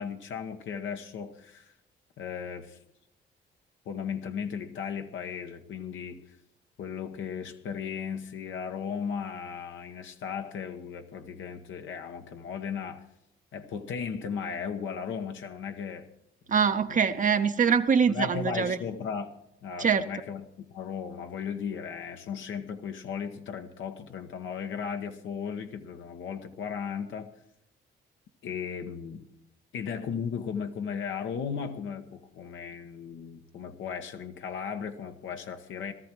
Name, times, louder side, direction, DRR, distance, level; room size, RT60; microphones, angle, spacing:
voice 1, 0.0-1.7 2.2-2.8 3.8-6.2 6.8-13.0 13.5-16.1 16.9-17.0 18.1-19.3 19.6-27.3 28.4-29.3 29.7-35.9, left 7 dB, 75° left, 1.2 m, -36 dB
voice 2, 16.5-18.8 19.8-20.1, right 6 dB, 40° right, 0.7 m, -24 dB
17.5 x 13.0 x 4.5 m
cardioid pair, 90°, 20 cm